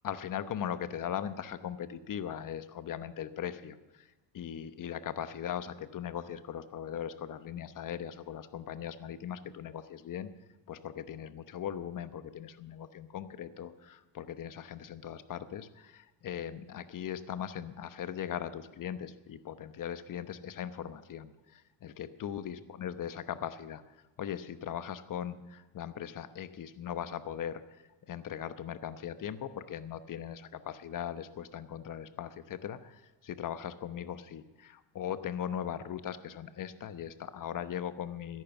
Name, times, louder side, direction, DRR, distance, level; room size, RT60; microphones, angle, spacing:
voice 1, 0.0-10.3 10.7-38.4, left 9 dB, 45° left, 12 dB, 1.0 m, -39 dB
13.5 x 11.0 x 7.0 m, 1.2 s
cardioid pair, 110°, 45 cm